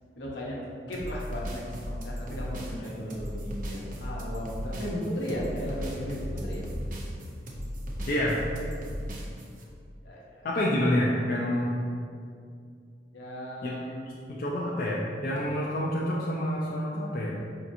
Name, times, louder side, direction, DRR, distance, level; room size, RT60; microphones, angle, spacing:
voice 1, 0.2-6.7 10.0-10.4 13.1-14.1, equal, 80° left, -4 dB, 0.8 m, -36 dB
sound 1, 0.9-9.6, equal, 50° right, 0.5 m, -36 dB
voice 2, 8.1-8.4 10.4-11.8 13.6-13.7 14.3-17.4, left 1 dB, 55° left, -6 dB, 0.4 m, -28 dB
4.9 x 2.8 x 2.5 m, 2.3 s
head